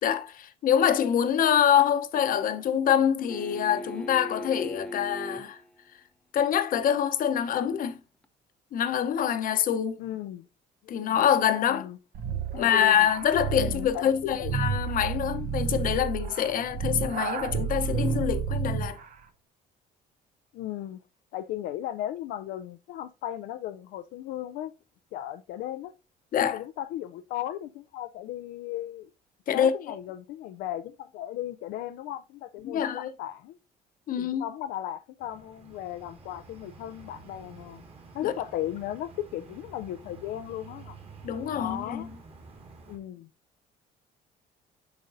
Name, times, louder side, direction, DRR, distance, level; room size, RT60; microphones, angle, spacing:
voice 1, 0.0-5.6 6.3-8.0 8.7-10.0 10.9-11.9 12.5-19.0 26.3-26.6 29.5-30.0 32.6-33.1 34.1-34.4 38.2-38.3 41.2-42.1, left 9 dB, 55° left, 0.8 m, -25 dB
sound 1, 3.3-5.7 8.2-8.3, equal, 5° left, 0.6 m, -38 dB
voice 2, 10.0-10.4 10.8-11.2 11.7-12.0 12.5-13.1 13.6-14.6 20.5-21.0 21.3-24.7 25.1-25.9 26.5-29.1 29.5-33.6 34.2-37.8 38.1-41.0 41.5-42.1 42.9-43.3, left 12 dB, 80° left, 0.4 m, -36 dB
sound 2, 12.2-19.0, right 6 dB, 55° right, 0.8 m, -31 dB
sound 3, 35.2-43.0, right 4 dB, 35° right, 1.9 m, -49 dB
8.0 x 5.1 x 2.6 m
cardioid pair, 110°, 17 cm